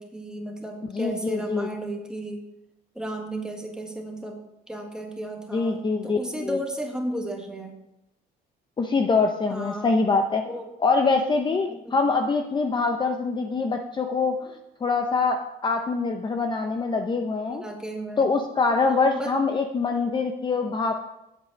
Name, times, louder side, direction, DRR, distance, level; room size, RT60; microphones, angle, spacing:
voice 1, 0.0-2.4 2.9-4.4 4.7-7.7 9.5-10.1 10.4-10.7 11.7-11.8 17.5-18.3 19.1-19.3, right 1 dB, 5° right, 2 dB, 1.6 m, -34 dB
voice 2, 0.9-1.7 5.5-6.6 8.8-10.4 10.8-17.6 18.2-20.9, left 4 dB, 25° left, 4 dB, 0.7 m, -24 dB
8.3 x 7.7 x 5.2 m, 0.88 s
cardioid pair, 110°, 17 cm